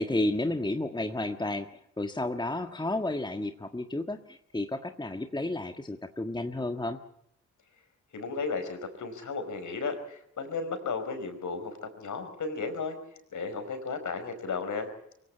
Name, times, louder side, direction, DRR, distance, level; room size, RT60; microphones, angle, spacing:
voice 1, 0.0-1.7 2.0-7.0, left 2 dB, 10° left, 7 dB, 1.6 m, -31 dB
voice 2, 8.1-13.0 13.3-14.9, left 4 dB, 55° left, 8 dB, 5.0 m, -34 dB
24.0 x 16.5 x 8.4 m, 0.75 s
hypercardioid pair, 40°, 36 cm